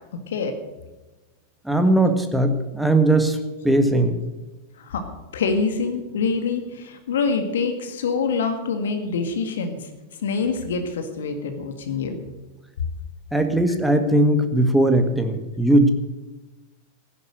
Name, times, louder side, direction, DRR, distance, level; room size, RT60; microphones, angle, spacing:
voice 1, 1.6-3.4 3.6-4.2 13.3-15.9, right 1 dB, ahead, 6 dB, 1.7 m, -19 dB
voice 2, 5.3-9.9 10.2-12.2, left 4 dB, 60° left, 7 dB, 1.8 m, -25 dB
15.5 x 11.0 x 6.4 m, 1.1 s
figure-of-eight pair, 90°, 0 cm